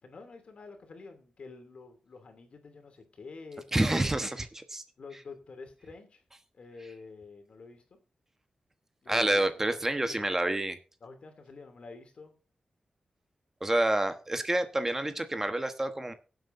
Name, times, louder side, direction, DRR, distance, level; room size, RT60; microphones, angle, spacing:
voice 1, 0.0-3.6 4.0-4.1 5.0-6.2 6.5-8.0 9.0-10.3 11.0-12.3, left 4 dB, 65° left, 5 dB, 2.8 m, -48 dB
voice 2, 3.7-4.8 9.1-10.8 13.6-16.1, right 1 dB, 20° right, 8 dB, 1.2 m, -28 dB
23.0 x 7.9 x 2.7 m, 0.34 s
wide cardioid pair, 85°, 2 cm